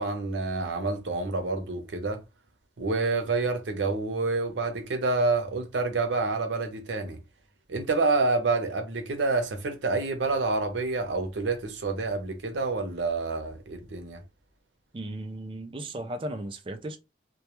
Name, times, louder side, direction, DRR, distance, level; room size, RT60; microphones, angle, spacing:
voice 1, 0.0-2.2 2.8-7.2 7.7-14.2, right 3 dB, 90° right, 0.6 m, -28 dB
voice 2, 14.9-17.0, right 1 dB, 30° right, 0.4 m, -36 dB
2.2 x 2.2 x 2.9 m
head